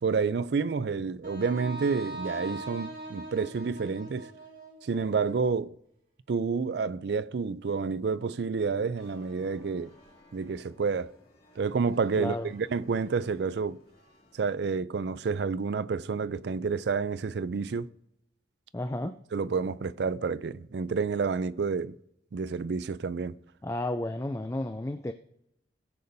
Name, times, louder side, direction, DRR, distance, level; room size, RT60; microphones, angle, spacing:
voice 1, 0.0-4.3 4.8-5.8 6.3-9.9 10.3-11.1 11.6-13.8 14.3-17.9 19.3-21.9 22.3-23.4, right 5 dB, 60° right, 0.4 m, -29 dB
Wind instrument woodwind instrument, 1.2-5.3, right 1 dB, 45° right, 2.0 m, -41 dB
sound 1, 9.0-14.6, left 1 dB, 50° left, 2.4 m, -59 dB
voice 2, 12.2-12.5 18.7-19.2 23.6-25.1, left 1 dB, 15° left, 0.3 m, -32 dB
19.0 x 6.9 x 2.7 m
head